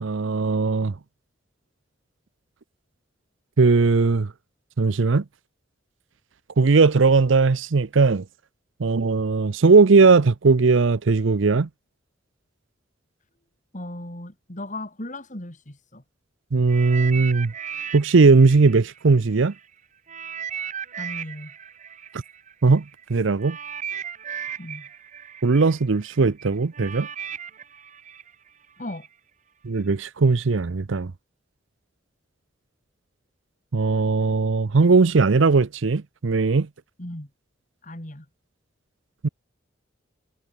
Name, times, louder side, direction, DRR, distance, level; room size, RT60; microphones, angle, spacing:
voice 1, 0.0-0.9 3.6-4.3 4.8-5.2 6.6-8.2 8.8-11.7 16.5-17.5 17.9-19.5 22.6-22.8 23.1-23.6 25.4-27.1 29.6-31.1 33.7-36.7 39.2-39.3, right 4 dB, 75° right, 0.6 m, -18 dB
voice 2, 13.7-16.0 20.9-21.5 24.6-24.9 28.8-29.1 37.0-37.3 37.8-38.2, left 1 dB, 40° left, 3.2 m, -36 dB
sound 1, 16.7-19.6 20.1-29.1 29.8-29.9, right 8 dB, 40° right, 1.7 m, -36 dB
head